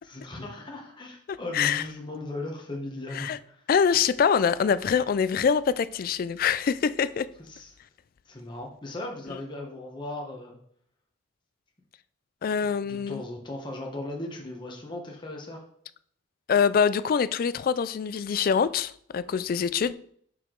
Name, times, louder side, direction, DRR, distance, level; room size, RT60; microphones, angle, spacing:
voice 1, 0.0-3.6 7.5-7.7 8.2-10.6 12.8-15.6, left 2 dB, 25° left, 1.0 m, -37 dB
voice 2, 3.7-7.3 12.4-13.2 16.5-19.9, left 6 dB, 50° left, 0.3 m, -24 dB
6.6 x 4.7 x 3.8 m
head